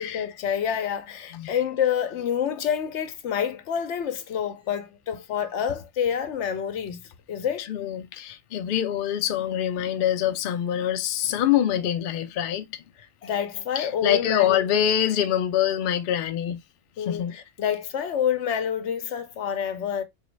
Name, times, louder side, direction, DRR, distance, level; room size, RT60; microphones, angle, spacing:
voice 1, 0.0-7.0 7.3-7.7 13.0-14.9 17.0-20.0, left 8 dB, 75° left, 0.9 m, -28 dB
voice 2, 7.6-12.6 13.8-16.6 17.1-17.3, left 10 dB, 60° left, 0.6 m, -25 dB
3.9 x 3.1 x 3.1 m
omnidirectional pair, 1.2 m